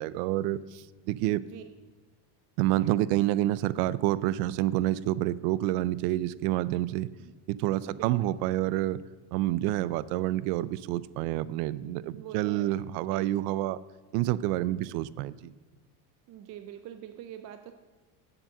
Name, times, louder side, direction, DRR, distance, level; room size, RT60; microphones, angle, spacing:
voice 1, 0.0-1.4 2.6-7.1 7.5-9.0 9.3-13.8 14.1-15.5, right 15 dB, 85° right, 18 dB, 0.6 m, -28 dB
voice 2, 1.3-1.6 7.2-7.3 7.8-8.3 12.0-12.8 13.1-13.3 16.3-17.7, right 11 dB, 40° right, 8 dB, 0.4 m, -45 dB
7.9 x 7.4 x 6.6 m, 1.4 s
cardioid pair, 165°, 45 cm